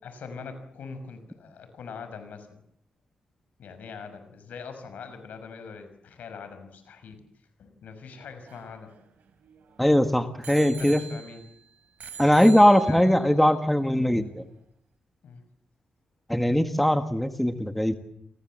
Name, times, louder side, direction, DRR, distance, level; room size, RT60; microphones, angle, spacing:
voice 1, 0.0-2.6 3.6-7.2 7.6-8.9 10.7-11.5 12.2-13.1 15.2-15.4, left 5 dB, 85° left, 9 dB, 5.9 m, -42 dB
Bicycle bell, 8.1-9.8 10.4-11.6 12.0-13.3 14.0-14.1, right 7 dB, 90° right, 3.7 m, -44 dB
voice 2, 9.8-11.0 12.2-14.5 16.3-18.0, equal, 5° left, 8 dB, 1.6 m, -20 dB
29.0 x 22.5 x 7.7 m, 0.72 s
wide cardioid pair, 150°, 3 cm